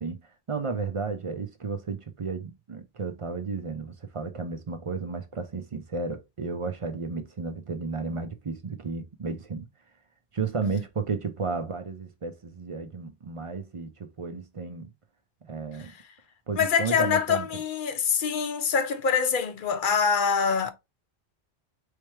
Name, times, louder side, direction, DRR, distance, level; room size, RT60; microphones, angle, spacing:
voice 1, 0.5-9.7 10.3-14.9 15.4-15.9 16.5-17.5, right 4 dB, 40° right, 0.5 m, -33 dB
voice 2, 16.6-20.7, left 6 dB, 55° left, 0.7 m, -25 dB
4.3 x 3.3 x 3.2 m
omnidirectional pair, 1.2 m